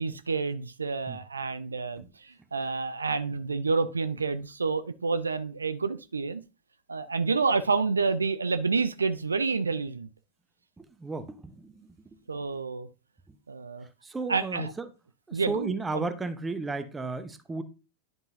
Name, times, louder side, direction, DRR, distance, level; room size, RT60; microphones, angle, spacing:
voice 1, 0.0-6.4 6.9-10.1 12.3-12.9 13.5-13.9 14.3-14.7 15.3-16.1, right 4 dB, 75° right, 0.5 m, -29 dB
voice 2, 10.8-11.9 14.0-14.7 15.3-17.6, right 3 dB, 10° right, 0.9 m, -34 dB
10.5 x 5.4 x 2.7 m
figure-of-eight pair, 90°, 0 cm